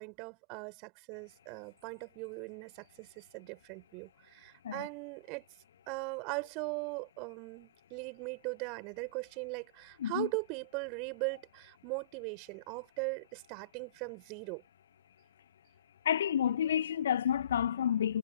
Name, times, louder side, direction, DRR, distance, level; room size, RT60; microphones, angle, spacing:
voice 1, 0.0-5.4 5.9-14.6, right 31 dB, 45° right, 6.3 m, -40 dB
voice 2, 16.0-18.2, left 9 dB, 65° left, 1.0 m, -30 dB
figure-of-eight pair, 90°, 0 cm